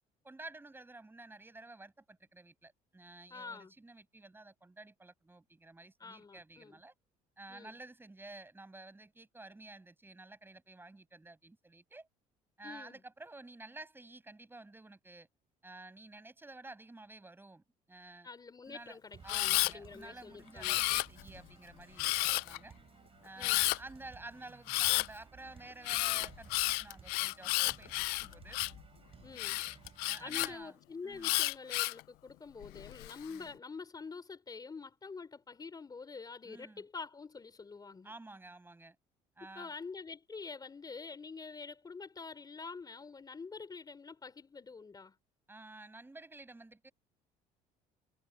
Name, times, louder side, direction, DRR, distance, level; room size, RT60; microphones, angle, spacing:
voice 1, 0.2-6.9 7.4-12.1 12.6-15.3 15.6-18.3 18.7-19.0 19.2-22.7 23.2-28.6 30.1-30.7 31.0-31.4 33.3-33.5 36.4-36.8 38.0-39.0 39.4-39.7 45.5-46.9, right 2 dB, 15° right, 7.6 m, -52 dB
voice 2, 3.3-3.7 6.0-6.8 7.5-7.8 12.6-13.0 18.2-20.8 23.4-23.6 29.2-29.6 30.2-38.1 39.6-45.2, left 4 dB, 25° left, 3.6 m, -47 dB
sound 1, 19.1-30.6, right 6 dB, 35° right, 7.2 m, -57 dB
Camera, 19.3-19.7 20.6-21.4 22.0-22.6 23.4-23.8 24.7-25.1 25.8-28.8 29.4-30.5 31.2-32.0 32.6-33.1, left 24 dB, 85° left, 0.5 m, -31 dB
cardioid pair, 95°, 16 cm